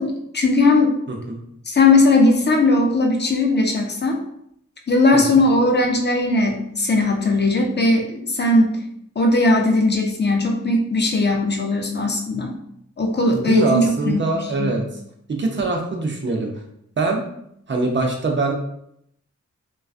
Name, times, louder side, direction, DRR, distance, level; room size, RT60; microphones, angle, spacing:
voice 1, 0.0-1.0 1.7-4.2 4.9-8.8 9.2-12.5 13.0-14.7, left 2 dB, 35° left, 2 dB, 0.4 m, -18 dB
voice 2, 1.1-1.4 5.1-5.4 13.3-14.8 15.3-16.5 17.0-17.2 17.7-18.5, right 3 dB, 40° right, 1 dB, 0.5 m, -23 dB
2.3 x 2.2 x 2.4 m, 0.73 s
wide cardioid pair, 95°, 30 cm